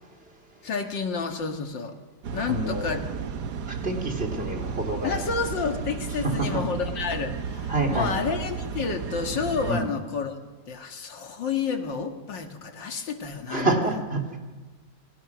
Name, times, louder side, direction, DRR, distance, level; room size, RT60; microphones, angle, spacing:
voice 1, 0.6-2.0 2.3-3.1 5.0-10.3 10.7-13.7, left 5 dB, 90° left, 5 dB, 2.6 m, -30 dB
sound 1, 2.2-9.7, right 6 dB, 65° right, 1.6 m, -33 dB
voice 2, 2.5-3.0 3.7-5.2 6.2-6.6 7.7-8.1 9.7-9.9 13.5-14.2, right 2 dB, 30° right, 2 dB, 3.5 m, -27 dB
28.5 x 21.0 x 6.2 m, 1.3 s
omnidirectional pair, 1.9 m